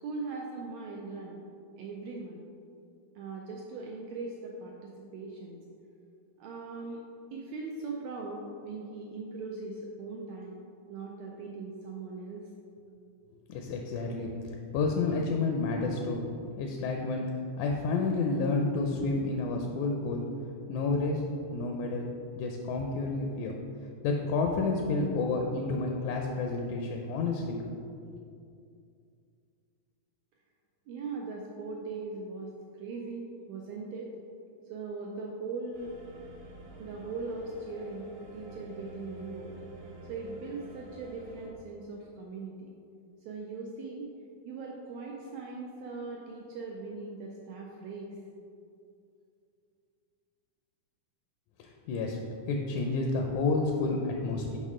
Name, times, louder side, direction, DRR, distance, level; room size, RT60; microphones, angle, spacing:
voice 1, 0.0-1.4 1.8-2.5 3.1-5.6 6.4-7.0 7.3-10.6 10.9-12.5 30.9-32.5 32.8-34.1 34.7-35.9 36.8-39.6 40.1-42.7 43.2-44.1 44.4-48.1, right 3 dB, 85° right, -1 dB, 1.5 m, -40 dB
voice 2, 13.5-14.3 14.7-16.2 16.6-17.3 17.6-20.2 20.7-21.2 21.5-22.1 22.4-23.6 24.0-27.6 51.6-52.2 52.5-54.6, left 3 dB, 80° left, 2 dB, 1.8 m, -30 dB
sound 1, 35.7-41.5, right 2 dB, 70° right, 1.4 m, -49 dB
6.3 x 5.4 x 3.6 m, 2.4 s
omnidirectional pair, 3.6 m